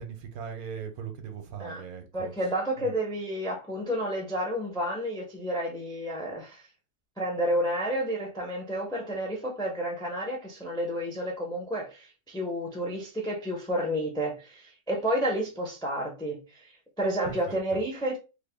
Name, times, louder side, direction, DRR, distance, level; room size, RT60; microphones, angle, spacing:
voice 1, 0.0-2.3 2.8-3.0 17.2-17.8, right 7 dB, 75° right, 1.1 m, -39 dB
voice 2, 2.1-6.6 7.2-16.7 17.0-18.2, equal, 5° left, 0.4 m, -30 dB
3.3 x 2.2 x 3.3 m
omnidirectional pair, 1.6 m